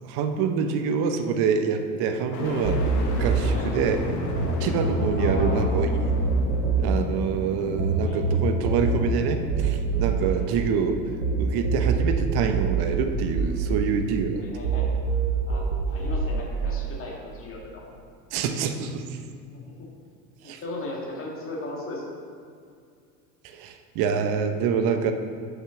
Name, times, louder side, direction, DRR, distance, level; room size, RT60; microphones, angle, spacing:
voice 1, 0.0-4.0 4.6-6.0 6.8-11.0 11.4-14.4 18.3-19.2 20.4-20.6 23.4-25.1, right 6 dB, 50° right, 6 dB, 0.9 m, -26 dB
sound 1, 2.3-16.3 16.8-17.6, left 2 dB, 65° left, 1.3 m, -35 dB
sound 2, 2.6-4.5 4.8-11.3 11.6-14.3 14.6-16.3, right 4 dB, 90° right, 1.1 m, -25 dB
voice 2, 5.2-5.7 8.0-8.2 10.2-10.4 14.4-14.9 15.5-17.9 19.8-19.9 20.4-22.0, left 2 dB, 25° left, -3 dB, 1.9 m, -37 dB
5.8 x 5.6 x 5.8 m, 2.3 s
hypercardioid pair, 90°, 48 cm